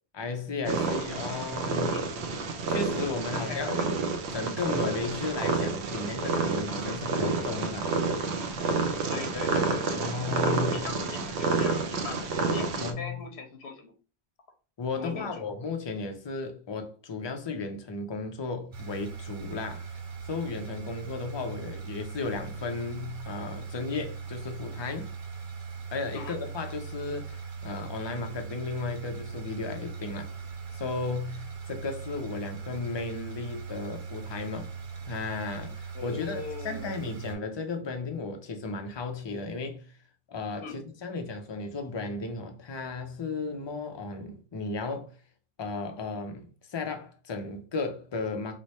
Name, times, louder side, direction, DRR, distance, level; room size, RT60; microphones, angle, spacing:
voice 1, 0.1-2.0 2.7-3.9 4.3-7.9 10.0-10.8 12.8-13.2 14.8-19.9 20.2-25.1 25.9-30.3 30.7-34.7 35.1-39.9 40.3-45.1 45.6-48.6, left 3 dB, 45° left, 0.3 m, -34 dB
Purr, 0.6-12.9, right 4 dB, 85° right, 0.8 m, -29 dB
voice 2, 3.3-3.8 9.1-10.2 10.4-13.9 15.0-15.5 26.1-26.4 35.9-36.9 40.6-40.8, left 5 dB, 80° left, 0.9 m, -40 dB
sound 1, 18.7-37.3, right 5 dB, 55° right, 0.7 m, -40 dB
3.1 x 2.1 x 4.0 m
omnidirectional pair, 1.1 m